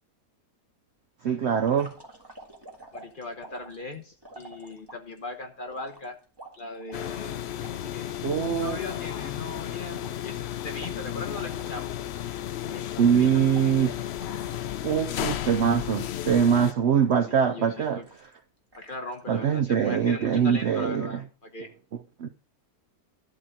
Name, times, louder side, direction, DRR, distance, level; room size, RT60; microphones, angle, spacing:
voice 1, 1.2-1.9 8.2-8.8 13.0-13.9 14.8-18.0 19.3-21.1 22.2-22.3, right 7 dB, 65° right, 10 dB, 0.7 m, -23 dB
sound 1, 1.6-5.2 5.7-8.2 8.6-8.7 8.9-11.8 12.1-12.3 12.7-15.2 15.7-16.2 16.5-17.2 17.7-18.3 18.7-19.2, right 2 dB, 15° right, 1.7 m, -49 dB
voice 2, 2.9-6.2 6.6-8.2 8.4-12.0 12.7-13.7 17.2-18.1 18.7-21.7, left 2 dB, 35° left, 6 dB, 1.0 m, -39 dB
sound 2, 6.9-16.7, left 11 dB, 80° left, 0.5 m, -33 dB
11.5 x 4.1 x 7.2 m, 0.38 s
omnidirectional pair, 1.7 m